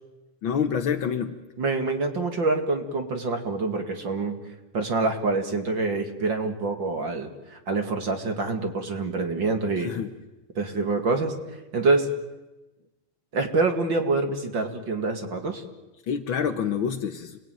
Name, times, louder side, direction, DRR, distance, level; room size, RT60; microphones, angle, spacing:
voice 1, 0.4-1.4 9.8-10.1 16.1-17.4, left 7 dB, 65° left, 6 dB, 1.2 m, -27 dB
voice 2, 1.6-4.4 4.7-9.9 10.6-11.3 11.7-12.1 13.3-15.6, right 3 dB, 40° right, 5 dB, 2.4 m, -26 dB
30.0 x 21.0 x 9.3 m, 1.1 s
omnidirectional pair, 3.8 m